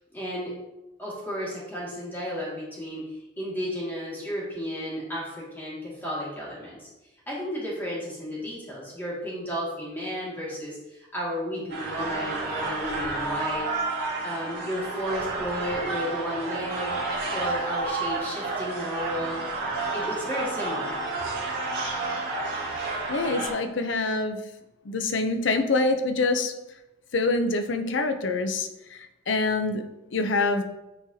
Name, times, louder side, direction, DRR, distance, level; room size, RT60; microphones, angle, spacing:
voice 1, 0.1-0.5 1.0-6.9 7.3-13.6 14.2-16.9 17.3-19.4 19.9-21.0, equal, 10° left, -7 dB, 2.0 m, -33 dB
sound 1, 11.7-23.5, right 3 dB, 60° right, 2.1 m, -30 dB
voice 2, 22.7-24.4 24.8-26.5 27.1-29.8 30.1-30.6, left 3 dB, 80° left, 7 dB, 0.6 m, -26 dB
9.1 x 4.0 x 2.7 m, 1.0 s
head